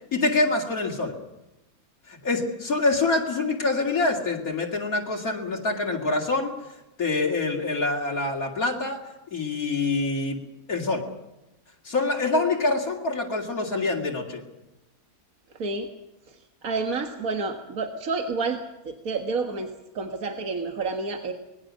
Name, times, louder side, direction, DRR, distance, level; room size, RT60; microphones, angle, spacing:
voice 1, 0.1-1.1 2.1-6.5 7.0-9.0 9.3-10.4 10.7-11.0 11.8-14.4, left 3 dB, 80° left, -2 dB, 3.0 m, -25 dB
voice 2, 16.6-18.6 18.9-19.7 20.0-21.3, right 4 dB, 75° right, 4 dB, 2.0 m, -29 dB
25.5 x 20.5 x 6.4 m, 0.95 s
omnidirectional pair, 1.5 m